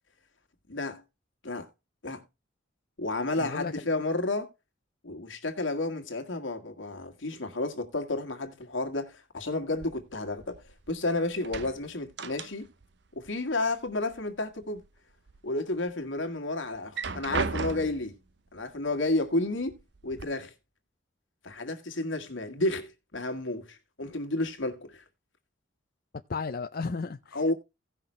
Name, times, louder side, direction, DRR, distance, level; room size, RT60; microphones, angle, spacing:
voice 1, 0.7-1.0 1.4-1.7 2.0-2.2 3.0-4.5 5.0-12.7 13.1-14.8 15.4-18.1 18.5-19.8 20.0-20.5 21.4-25.0 27.3-27.5, left 2 dB, 75° left, 1.8 m, -31 dB
voice 2, 3.4-3.7 26.3-27.5, left 4 dB, 50° left, 0.5 m, -34 dB
sound 1, 9.8-11.0 11.3-12.9 13.2-14.2 14.6-15.4 15.9-16.0 16.7-18.1 19.1-19.2 19.6-20.2, right 4 dB, 60° right, 0.7 m, -36 dB
17.0 x 5.9 x 3.2 m
head